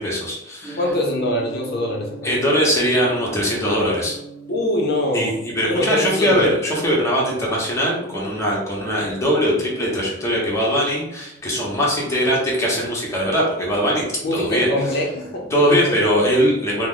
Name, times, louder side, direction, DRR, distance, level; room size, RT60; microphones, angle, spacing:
voice 1, 0.0-0.8 2.2-4.2 5.1-14.0 14.3-14.7 15.5-16.9, equal, 15° left, -4 dB, 0.9 m, -21 dB
Gong, 0.6-14.8, right 4 dB, 15° right, 0.8 m, -42 dB
voice 2, 0.8-2.3 4.5-5.3 5.7-6.5 14.2-15.8, left 1 dB, 55° left, -1 dB, 0.5 m, -23 dB
2.9 x 2.0 x 3.7 m, 0.85 s
head